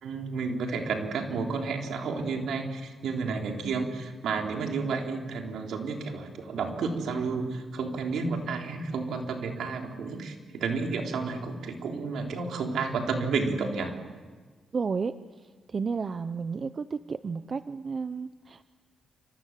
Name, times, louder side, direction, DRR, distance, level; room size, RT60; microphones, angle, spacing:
voice 1, 0.0-14.0, right 4 dB, 80° right, 2 dB, 3.9 m, -31 dB
voice 2, 14.7-15.1 15.7-18.6, right 5 dB, 45° right, 12 dB, 0.8 m, -32 dB
29.0 x 26.5 x 7.7 m, 1.4 s
cardioid pair, 70°, 0 cm